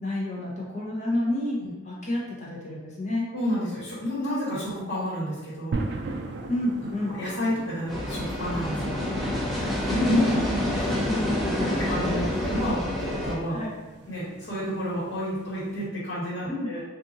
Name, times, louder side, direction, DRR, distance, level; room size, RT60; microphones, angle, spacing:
voice 1, 0.0-1.6 1.8-3.2 6.5-7.2 9.5-10.1 10.7-11.8 12.3-12.4 13.5-13.7 16.5-16.7, left 1 dB, 35° left, -4 dB, 0.7 m, -30 dB
voice 2, 3.3-5.8 7.1-9.0 9.8-10.9 11.5-13.6 14.1-16.8, equal, 70° left, -9 dB, 1.4 m, -30 dB
sound 1, 5.7-15.9, right 3 dB, 60° right, 0.3 m, -39 dB
sound 2, 7.9-13.3, left 1 dB, ahead, 0.5 m, -28 dB
2.6 x 2.5 x 3.8 m, 1.1 s
head